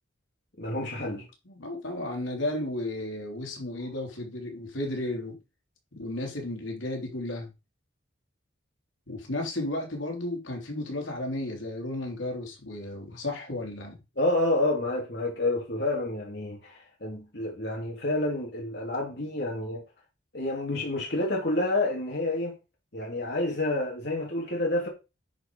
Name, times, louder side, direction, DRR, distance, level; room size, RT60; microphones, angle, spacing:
voice 1, 0.6-1.2 14.2-19.8 20.3-22.6 22.9-24.9, left 2 dB, 55° left, 2.6 m, -29 dB
voice 2, 1.5-5.4 5.9-7.5 9.1-14.0, left 1 dB, 80° left, 3.4 m, -33 dB
10.0 x 4.8 x 5.3 m
head